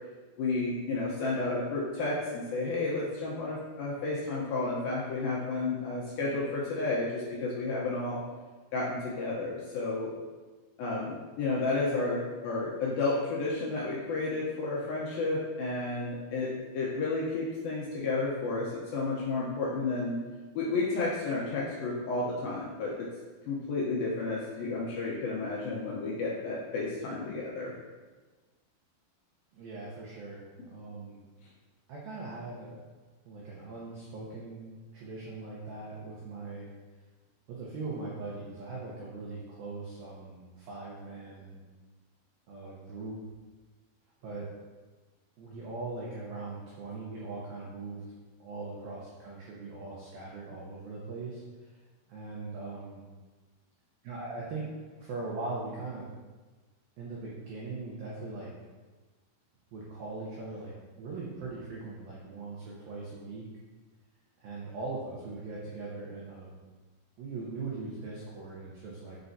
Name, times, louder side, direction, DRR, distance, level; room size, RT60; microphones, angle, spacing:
voice 1, 0.4-8.2 8.7-10.1 10.8-20.2 20.5-23.1 23.5-27.7, left 3 dB, 90° left, -6 dB, 2.1 m, -32 dB
voice 2, 29.5-31.2 31.9-32.7 33.3-36.7 37.5-41.6 42.5-43.2 44.2-44.5 45.4-48.0 48.4-51.8 52.1-53.0 54.0-54.7 55.0-56.1 57.0-58.5 59.7-63.4 64.4-66.6 67.2-69.2, right 3 dB, 85° right, -5 dB, 2.0 m, -40 dB
7.8 x 6.9 x 2.8 m, 1.3 s
omnidirectional pair, 5.6 m